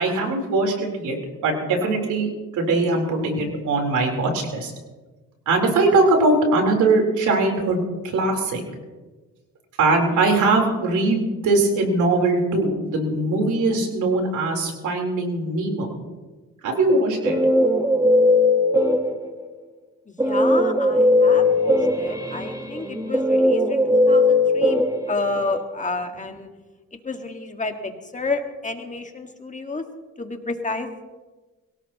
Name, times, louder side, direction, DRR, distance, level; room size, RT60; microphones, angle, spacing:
voice 1, 0.0-4.7 5.5-8.6 9.8-16.0 16.6-17.4, right 2 dB, 80° right, 2 dB, 3.9 m, -21 dB
Guitar, 16.9-19.4 20.2-25.6, left 1 dB, 10° right, 1.6 m, -19 dB
voice 2, 20.1-26.5 27.0-29.8 30.2-30.9, left 3 dB, 25° left, 5 dB, 1.8 m, -30 dB
23.0 x 17.0 x 3.0 m, 1.2 s
cardioid pair, 90°, 30 cm